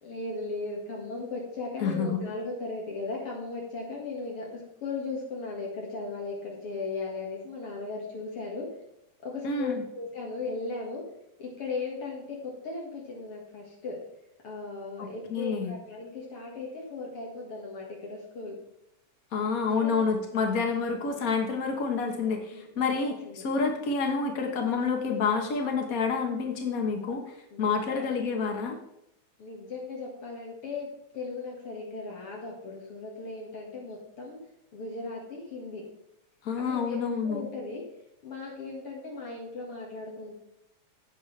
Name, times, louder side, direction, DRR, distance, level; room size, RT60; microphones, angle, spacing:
voice 1, 0.0-8.7 9.2-11.0 11.4-14.0 14.4-18.6 19.8-20.1 22.5-22.7 23.0-23.4 27.5-28.1 29.4-34.4 34.7-35.8 36.7-37.8 38.2-40.4, left 3 dB, 50° left, -2 dB, 2.6 m, -37 dB
voice 2, 1.8-2.3 9.4-9.8 15.0-15.7 19.3-28.8 36.4-37.5, left 5 dB, 70° left, 3 dB, 0.8 m, -28 dB
16.0 x 6.4 x 3.3 m, 0.82 s
omnidirectional pair, 3.3 m